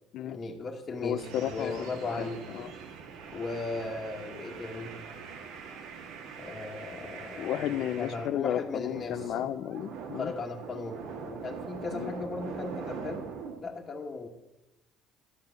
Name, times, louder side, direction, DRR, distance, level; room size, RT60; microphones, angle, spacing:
voice 1, 0.3-2.4 3.3-4.9 6.4-9.4 10.1-13.3 13.6-14.3, left 3 dB, 30° left, -3 dB, 1.7 m, -37 dB
voice 2, 1.0-2.7 7.4-10.3 11.9-12.1, left 11 dB, 65° left, 15 dB, 0.7 m, -33 dB
sound 1, 1.2-8.4 8.8-13.6, right 6 dB, 75° right, 2.1 m, -42 dB
12.5 x 8.2 x 7.9 m, 0.94 s
cardioid pair, 125°, 0 cm